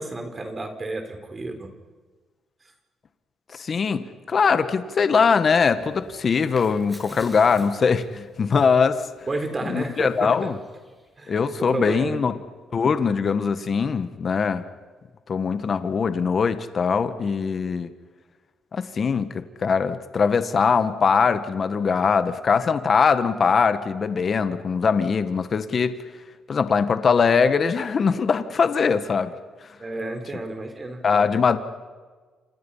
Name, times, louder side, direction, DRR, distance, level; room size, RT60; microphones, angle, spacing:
voice 1, 0.0-1.7 9.3-10.5 11.2-12.2 29.8-31.0, right 2 dB, 30° right, 6 dB, 4.2 m, -31 dB
voice 2, 3.5-9.0 9.7-10.6 11.3-12.4 12.7-14.6 15.3-17.9 18.7-26.0 26.5-29.3 31.0-31.6, left 5 dB, 45° left, 10 dB, 1.6 m, -21 dB
sound 1, 5.7-11.4, equal, 5° right, 7.5 m, -49 dB
29.5 x 27.0 x 5.7 m, 1.4 s
cardioid pair, 90°, 0 cm